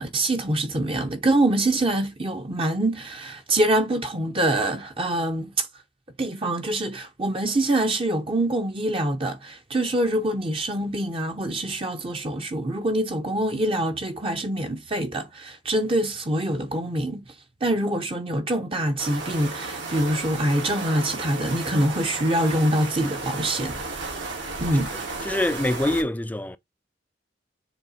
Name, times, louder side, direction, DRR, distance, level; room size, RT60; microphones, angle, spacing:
voice 1, 0.0-5.7 6.2-17.3 17.6-24.0 24.6-24.9, right 1 dB, 30° right, 0.8 m, -25 dB
sound 1, 19.0-26.0, right 3 dB, 75° right, 2.5 m, -33 dB
voice 2, 24.9-26.6, left 1 dB, 10° left, 0.3 m, -25 dB
7.1 x 3.2 x 4.1 m
head